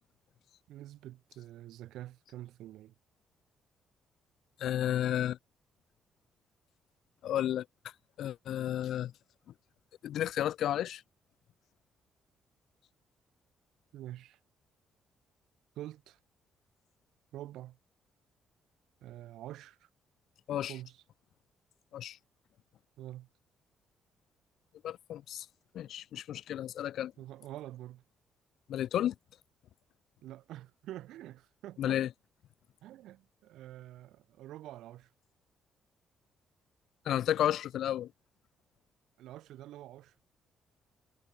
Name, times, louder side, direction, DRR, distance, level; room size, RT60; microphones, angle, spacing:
voice 1, 0.7-2.9 13.9-14.4 15.7-16.2 17.3-17.8 19.0-19.9 20.7-21.0 23.0-23.3 27.2-28.0 30.2-32.0 32.8-35.1 39.2-40.1, right 14 dB, 85° right, 4.8 m, -47 dB
voice 2, 4.6-5.4 7.2-7.6 8.2-9.1 10.0-11.0 20.5-20.7 21.9-22.2 24.8-25.5 25.7-27.1 28.7-29.1 31.8-32.1 37.0-38.1, left 11 dB, 75° left, 0.8 m, -32 dB
cardioid pair, 90°, 0 cm